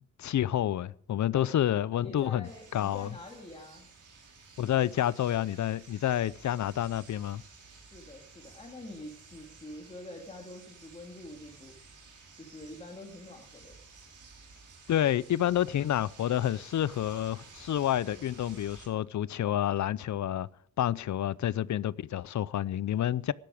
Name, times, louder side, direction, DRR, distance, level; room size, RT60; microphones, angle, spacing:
voice 1, 0.0-3.1 4.6-7.4 14.9-20.5 20.8-23.3, left 11 dB, 70° left, 0.6 m, -29 dB
voice 2, 2.0-3.9 7.8-11.7 12.4-13.7, left 1 dB, 20° left, 2.4 m, -46 dB
sound 1, 2.4-18.9, right 4 dB, 75° right, 4.7 m, -54 dB
17.5 x 12.0 x 5.0 m
wide cardioid pair, 150°, 31 cm